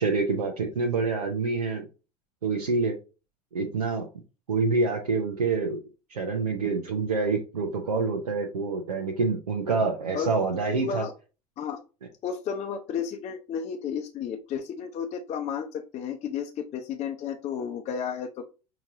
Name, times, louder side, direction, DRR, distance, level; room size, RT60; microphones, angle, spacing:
voice 1, 0.0-1.8 2.4-2.9 3.5-4.1 4.5-5.8 6.1-11.0, right 4 dB, 85° right, 1 dB, 0.8 m, -26 dB
voice 2, 10.7-11.1 11.6-11.8 12.2-18.5, left 7 dB, 35° left, 4 dB, 0.6 m, -32 dB
5.8 x 3.0 x 2.7 m, 0.32 s
figure-of-eight pair, 75°, 20 cm